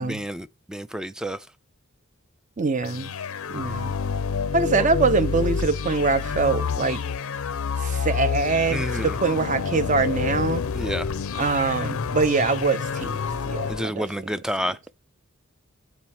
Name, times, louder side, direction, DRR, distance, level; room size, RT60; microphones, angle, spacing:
voice 1, 0.0-1.4 4.8-4.9 8.7-9.1 10.7-11.1 13.7-14.8, equal, 5° right, 0.3 m, -29 dB
voice 2, 2.6-3.1 3.5-3.9 4.5-7.0 7.8-10.7 11.4-13.2 13.5-14.1, right 4 dB, 35° right, 0.6 m, -23 dB
sound 1, 2.8-13.9, left 5 dB, 80° left, 0.5 m, -28 dB
8.5 x 4.5 x 5.8 m
head